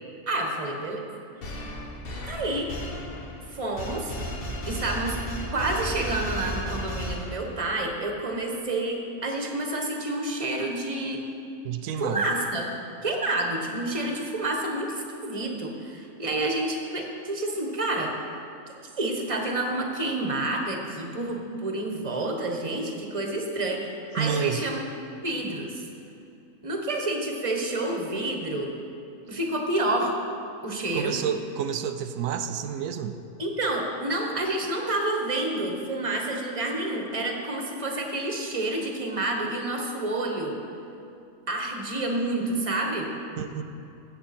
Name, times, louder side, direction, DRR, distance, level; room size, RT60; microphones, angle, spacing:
voice 1, 0.3-1.0 2.2-2.7 3.5-4.1 4.7-5.2 5.5-11.2 12.0-12.7 13.0-18.1 19.0-24.8 25.2-25.8 26.6-28.7 29.3-30.1 30.6-31.1 33.4-40.6 41.5-43.1, right 2 dB, 25° right, 1 dB, 1.2 m, -29 dB
sound 1, 1.4-7.7, equal, 45° left, 1.2 m, -34 dB
voice 2, 11.6-12.3 24.2-24.6 30.9-33.2 43.4-43.6, right 8 dB, 90° right, 8 dB, 1.0 m, -29 dB
14.0 x 8.1 x 4.3 m, 2.7 s
omnidirectional pair, 1.4 m